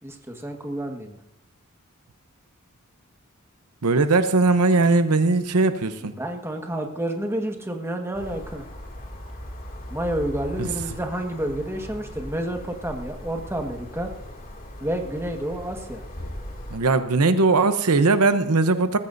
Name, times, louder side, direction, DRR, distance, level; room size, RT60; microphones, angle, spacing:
voice 1, 0.0-1.2 6.0-8.6 9.9-14.1 14.8-16.0, right 1 dB, 10° right, 3 dB, 1.5 m, -30 dB
voice 2, 3.8-6.1 10.6-10.7 16.7-19.0, right 3 dB, 85° right, 10 dB, 0.9 m, -19 dB
sound 1, 8.1-16.8, equal, 40° left, 2.5 m, -38 dB
19.5 x 14.5 x 2.7 m, 0.75 s
head